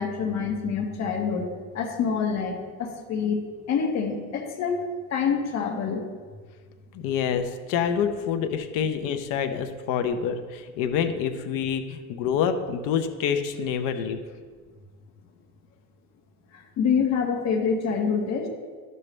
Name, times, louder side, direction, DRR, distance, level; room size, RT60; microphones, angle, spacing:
voice 1, 0.0-1.5 1.7-3.4 3.7-4.8 5.1-6.0 16.5-18.5, left 6 dB, 55° left, 0 dB, 1.6 m, -26 dB
voice 2, 6.9-14.2, left 7 dB, 80° left, 7 dB, 0.9 m, -27 dB
12.0 x 6.7 x 3.3 m, 1.5 s
cardioid pair, 135°, 33 cm